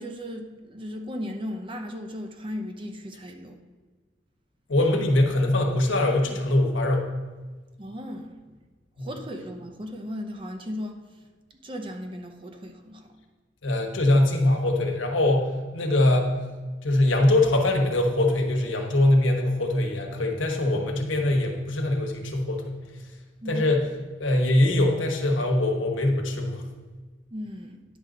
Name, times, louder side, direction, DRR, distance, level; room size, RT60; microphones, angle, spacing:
voice 1, 0.0-3.6 7.8-8.4 9.0-11.0 11.6-13.1 23.4-23.6 27.3-27.8, equal, 25° right, 0.7 m, -36 dB
voice 2, 4.7-7.1 9.0-9.1 13.6-16.3 16.8-22.7 23.5-23.8 24.2-26.6, left 1 dB, 80° left, 1.2 m, -22 dB
10.0 x 6.3 x 3.9 m
head